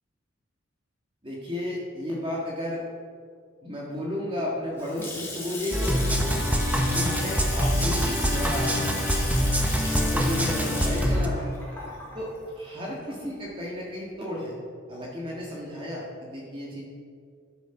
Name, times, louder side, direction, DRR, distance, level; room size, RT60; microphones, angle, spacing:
voice 1, 1.2-2.8 3.6-6.4 6.9-8.7 9.1-11.5 12.2-14.5 14.9-16.8, left 1 dB, 25° right, -4 dB, 1.7 m, -33 dB
Water tap faucet / Sink (filling or washing) / Splash splatter, 4.5-13.4, left 2 dB, 10° left, 3.1 m, -35 dB
sound 1, 5.7-11.3, equal, 10° right, 0.9 m, -25 dB
11.5 x 8.3 x 5.9 m, 2.2 s
head